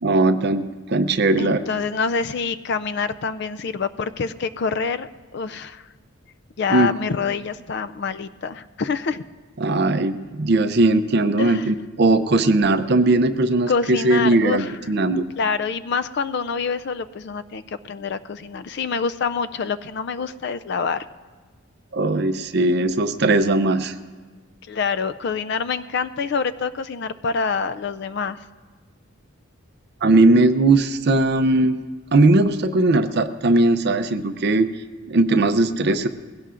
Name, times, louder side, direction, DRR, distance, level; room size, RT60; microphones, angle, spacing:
voice 1, 0.0-1.6 6.7-6.9 9.6-15.3 21.9-23.9 30.0-31.8 32.1-34.7 35.1-36.1, right 2 dB, 50° right, 10 dB, 0.5 m, -19 dB
voice 2, 1.4-5.9 6.6-9.2 11.4-11.7 13.7-14.8 15.4-21.1 24.7-28.5, left 5 dB, 50° left, 13 dB, 0.3 m, -26 dB
20.0 x 16.5 x 2.5 m, 1.4 s
head